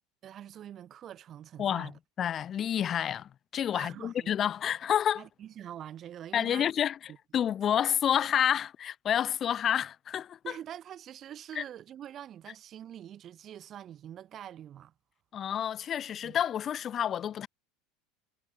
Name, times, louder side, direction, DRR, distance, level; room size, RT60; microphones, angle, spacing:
voice 1, 0.2-2.0 3.7-4.3 5.2-6.7 7.1-7.2 10.4-14.9 16.2-16.4, right 10 dB, 40° right, 6.1 m, -45 dB
voice 2, 1.6-1.9 2.2-5.2 6.3-10.4 11.5-11.6 15.3-17.5, left 9 dB, 40° left, 1.5 m, -29 dB
supercardioid pair, 100°, 0 cm